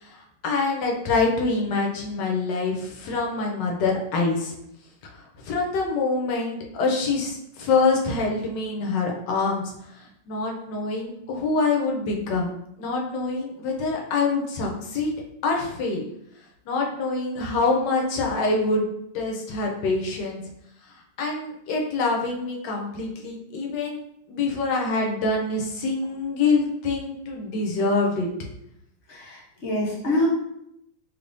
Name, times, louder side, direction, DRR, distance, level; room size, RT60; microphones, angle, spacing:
voice 1, 0.0-4.5 5.1-12.5 12.8-15.1 15.4-16.0 16.7-18.9 19.1-20.4 21.2-24.0 24.3-28.3, left 3 dB, 70° left, 0 dB, 1.2 m, -25 dB
voice 2, 29.1-30.3, left 1 dB, 50° left, -4 dB, 0.9 m, -25 dB
3.4 x 3.1 x 2.5 m, 0.78 s
omnidirectional pair, 2.1 m